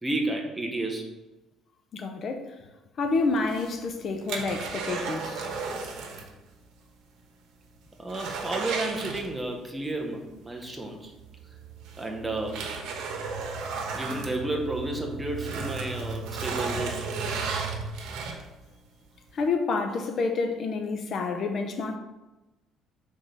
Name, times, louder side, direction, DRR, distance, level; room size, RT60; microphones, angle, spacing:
voice 1, 0.0-1.1 8.0-11.1 12.0-12.7 13.9-17.0, right 2 dB, 10° right, 0.8 m, -32 dB
voice 2, 1.9-2.6 3.0-5.5 19.3-22.0, left 3 dB, 40° left, 0.6 m, -28 dB
sound 1, 3.4-6.3 6.6-6.7 7.2-7.3 7.6-9.7 11.1-11.2 11.8-15.0 15.3-18.6 19.2-19.3, right 4 dB, 75° right, 1.1 m, -34 dB
sound 2, 10.3-17.9, right 5 dB, 50° right, 0.6 m, -39 dB
5.0 x 3.7 x 5.5 m
cardioid pair, 155°, 0 cm